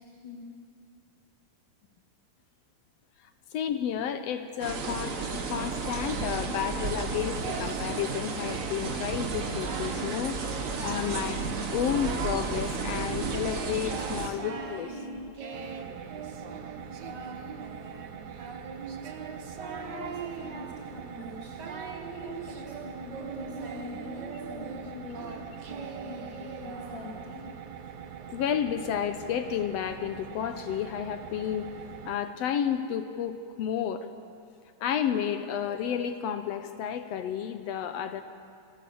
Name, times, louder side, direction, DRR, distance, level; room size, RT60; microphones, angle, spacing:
voice 1, 0.1-0.5 16.5-16.8 17.1-17.4 19.7-21.6 22.2-25.4 26.0-27.5, left 3 dB, 45° left, -3 dB, 2.4 m, -44 dB
voice 2, 3.5-5.2 5.5-10.4 10.8-11.4 11.7-15.0 28.3-31.7 32.0-34.1 34.8-38.2, left 9 dB, 70° left, 9 dB, 1.7 m, -31 dB
sound 1, 4.6-14.3, right 4 dB, 70° right, 0.7 m, -33 dB
Singing, 7.4-8.9 9.3-10.1 10.4-11.3 11.6-12.5 12.9-27.4, right 4 dB, 50° right, 1.3 m, -41 dB
sound 2, 15.5-32.2, right 8 dB, 85° right, 2.5 m, -44 dB
28.0 x 13.5 x 7.1 m, 2.3 s
omnidirectional pair, 3.4 m